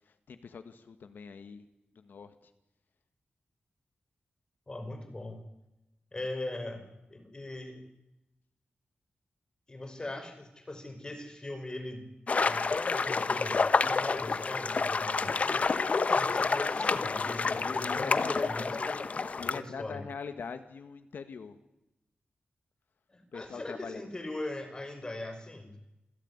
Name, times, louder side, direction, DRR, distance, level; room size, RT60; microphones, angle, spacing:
voice 1, 0.1-1.6 2.0-2.5 17.4-18.5 19.4-21.6 23.3-24.0, left 5 dB, 80° left, 9 dB, 1.7 m, -42 dB
voice 2, 4.7-5.4 6.1-7.9 9.7-12.0 12.4-15.7 16.1-19.0 19.5-20.0 23.1-25.7, left 2 dB, 25° left, 7 dB, 5.5 m, -40 dB
sound 1, 12.3-19.6, left 4 dB, 45° left, 1.1 m, -29 dB
28.0 x 16.5 x 9.8 m, 0.92 s
wide cardioid pair, 135°, 3 cm